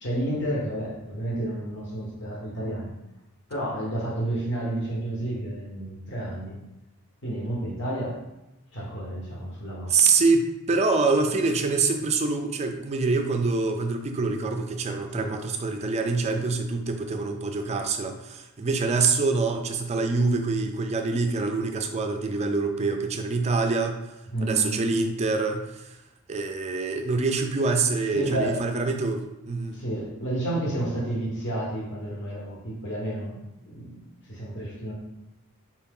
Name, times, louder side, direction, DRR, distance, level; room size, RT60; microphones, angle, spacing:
voice 1, 0.0-2.9 3.5-6.6 7.2-8.2 8.7-10.0 15.1-15.4 16.3-16.4 24.3-24.8 28.1-28.7 29.7-34.9, right 1 dB, 55° left, -3 dB, 1.2 m, -31 dB
voice 2, 9.9-24.0 24.4-25.9 26.3-29.8, right 4 dB, 30° right, 5 dB, 0.4 m, -25 dB
4.4 x 2.8 x 3.6 m, 0.93 s
head